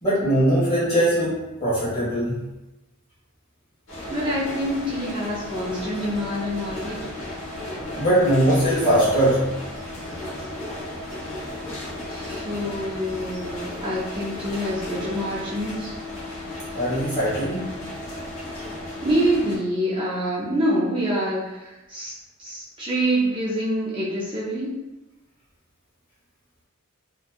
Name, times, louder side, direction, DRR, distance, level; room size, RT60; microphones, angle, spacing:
voice 1, 0.0-2.4 8.0-9.5 16.7-17.6, right 1 dB, 25° left, -10 dB, 1.2 m, -21 dB
sound 1, 3.9-19.6, left 1 dB, 60° left, 0.9 m, -34 dB
voice 2, 4.1-7.0 12.1-15.9 19.0-24.8, equal, 25° right, -8 dB, 0.4 m, -26 dB
2.6 x 2.2 x 2.2 m, 1.0 s
head